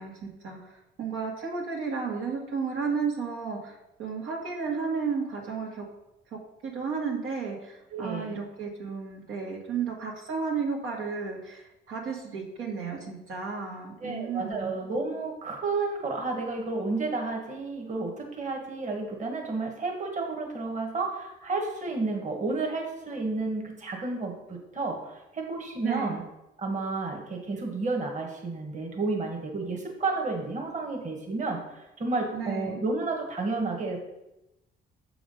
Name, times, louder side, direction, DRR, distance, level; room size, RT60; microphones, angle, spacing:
voice 1, 0.0-5.8 6.6-14.8 25.8-26.2 32.3-32.8, right 5 dB, 85° right, -2 dB, 1.9 m, -33 dB
voice 2, 7.9-8.4 14.0-26.2 26.6-34.0, right 3 dB, 40° right, 1 dB, 1.5 m, -31 dB
6.9 x 4.9 x 5.4 m, 0.92 s
cardioid pair, 90°, 20 cm